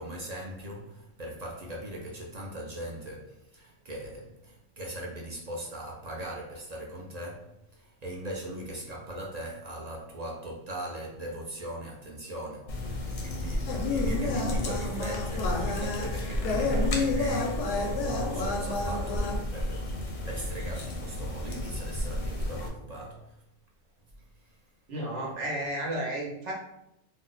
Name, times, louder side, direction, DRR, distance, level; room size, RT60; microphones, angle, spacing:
voice 1, 0.0-23.4 24.4-24.6, right 1 dB, 50° right, 0.5 m, -39 dB
sound 1, 12.7-22.7, left 1 dB, 50° left, 0.6 m, -34 dB
sound 2, 13.7-19.4, left 3 dB, 85° left, 0.9 m, -30 dB
voice 2, 24.9-26.5, right 1 dB, 80° right, 1.2 m, -32 dB
2.7 x 2.1 x 3.8 m
omnidirectional pair, 1.2 m